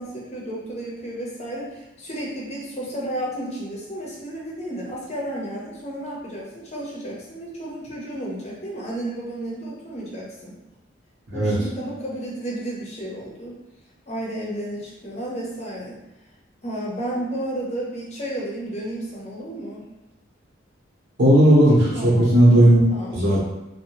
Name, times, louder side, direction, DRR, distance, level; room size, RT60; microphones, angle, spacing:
voice 1, 0.0-10.6 11.3-13.6 14.1-16.0 16.6-19.8 21.9-22.3 22.9-23.4, right 1 dB, 35° left, -4 dB, 0.6 m, -32 dB
voice 2, 21.2-22.8 23.1-23.4, right 1 dB, 65° right, -7 dB, 0.9 m, -15 dB
2.7 x 2.1 x 2.9 m, 0.97 s
head